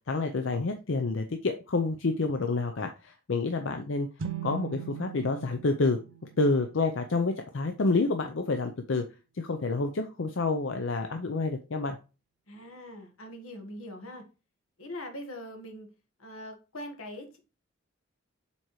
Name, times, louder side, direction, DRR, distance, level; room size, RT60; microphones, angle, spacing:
voice 1, 0.1-4.1 4.4-6.0 6.4-9.0 9.3-12.0, left 3 dB, 65° left, 6 dB, 0.6 m, -28 dB
sound 1, 4.2-7.8, right 8 dB, 65° right, 0.6 m, -41 dB
voice 2, 12.5-14.2 14.8-15.9 16.2-17.4, left 1 dB, 85° left, 5 dB, 1.5 m, -42 dB
7.0 x 4.4 x 3.1 m, 0.31 s
head